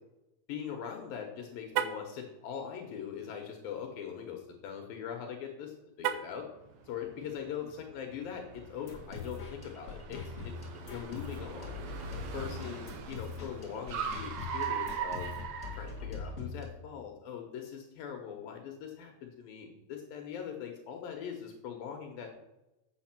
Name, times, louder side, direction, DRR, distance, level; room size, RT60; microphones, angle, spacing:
voice 1, 0.5-6.5 6.9-11.7 12.3-15.3 15.7-22.3, left 8 dB, 75° left, 3 dB, 2.7 m, -41 dB
Car, 1.7-2.1 6.0-6.5, right 10 dB, 85° right, 1.8 m, -33 dB
Car 2, 6.7-16.5, right 7 dB, 70° right, 1.6 m, -41 dB
sound 1, 8.9-16.6, left 4 dB, 35° left, 1.1 m, -42 dB
8.2 x 7.6 x 5.9 m, 0.95 s
omnidirectional pair, 4.4 m